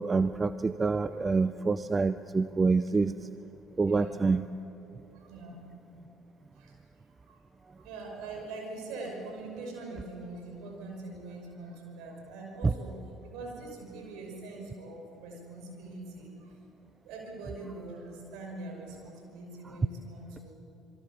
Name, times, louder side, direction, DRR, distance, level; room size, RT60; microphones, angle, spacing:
voice 1, 0.0-3.3 3.8-4.5 12.6-12.7, right 4 dB, 25° right, 13 dB, 0.6 m, -26 dB
voice 2, 5.1-5.7 6.5-6.8 7.2-7.4 7.7-16.6 17.0-20.5, right 2 dB, 60° right, 1 dB, 5.9 m, -43 dB
27.0 x 22.5 x 7.3 m, 3.0 s
figure-of-eight pair, 50°, 0 cm